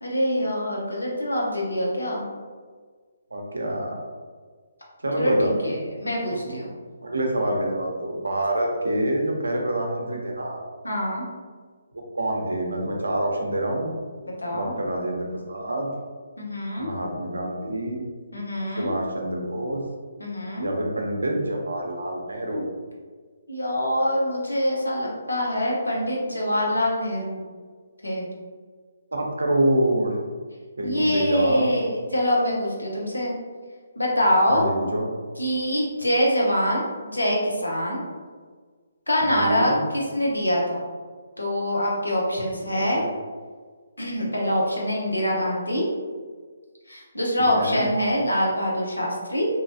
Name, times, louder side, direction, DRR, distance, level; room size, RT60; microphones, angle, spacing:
voice 1, 0.0-2.2 5.2-6.7 10.8-11.2 14.4-14.7 16.4-16.9 18.3-18.9 20.2-20.7 23.5-27.4 28.0-28.3 30.8-33.3 34.0-34.7 35.4-38.0 39.1-40.8 41.4-43.1 44.0-45.9 46.9-49.5, equal, 85° left, -3 dB, 0.8 m, -24 dB
voice 2, 3.3-3.9 5.0-5.7 6.3-6.6 7.0-10.6 11.9-13.9 14.5-15.9 16.8-18.1 18.8-19.8 20.6-22.7 29.1-30.2 30.8-31.7 34.5-35.1 39.2-39.8 42.7-43.1 47.4-47.9, right 1 dB, 75° right, 1 dB, 0.6 m, -26 dB
2.8 x 2.3 x 2.6 m, 1.5 s
figure-of-eight pair, 140°, 0 cm